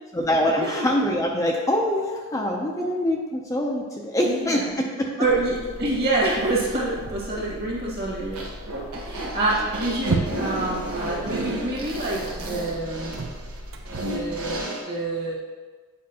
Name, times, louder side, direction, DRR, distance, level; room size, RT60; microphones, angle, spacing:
voice 1, 0.1-5.1 9.2-9.4, left 1 dB, 15° left, -1 dB, 0.4 m, -24 dB
voice 2, 4.2-4.7 5.2-8.4 8.9-13.2 13.9-15.4, right 2 dB, 45° right, -4 dB, 1.6 m, -27 dB
sound 1, 5.2-14.6, right 2 dB, 60° right, 0.6 m, -35 dB
sound 2, 8.3-14.8, right 1 dB, 90° right, 1.3 m, -32 dB
8.5 x 5.1 x 2.8 m, 1.4 s
head